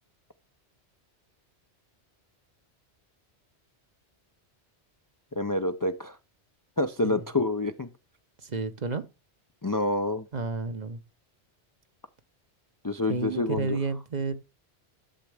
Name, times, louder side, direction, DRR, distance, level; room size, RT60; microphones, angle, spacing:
voice 1, 5.4-6.2 6.8-7.9 9.6-10.3 12.8-13.7, left 2 dB, 25° left, 0.4 m, -27 dB
voice 2, 8.4-9.0 10.3-11.0 13.1-14.3, right 4 dB, 45° right, 0.9 m, -31 dB
11.5 x 7.2 x 3.4 m
omnidirectional pair, 1.1 m